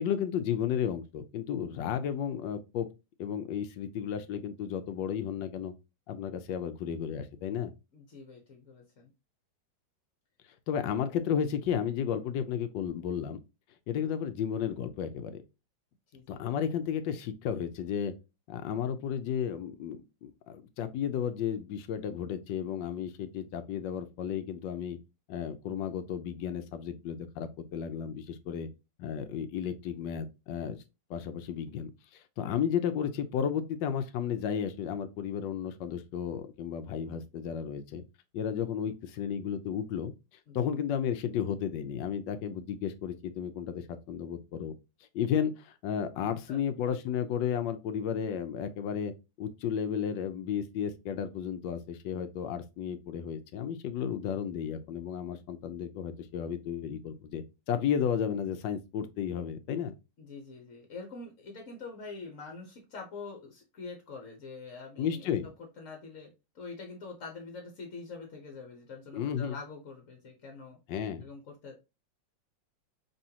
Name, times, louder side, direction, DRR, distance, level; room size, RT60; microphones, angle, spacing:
voice 1, 0.0-2.9 3.2-5.7 6.1-7.7 10.7-13.4 13.9-15.4 16.3-18.1 18.5-25.0 25.3-28.7 29.0-30.8 31.1-38.0 38.3-40.1 40.5-44.7 45.1-49.1 49.4-59.9 65.0-65.5 69.1-69.6 70.9-71.3, left 8 dB, 85° left, 1.4 m, -33 dB
voice 2, 7.9-9.1 16.1-16.4 40.5-40.7 46.2-46.6 60.2-70.8 71.2-71.8, left 4 dB, 50° left, 1.2 m, -45 dB
5.5 x 3.1 x 2.8 m
omnidirectional pair, 2.0 m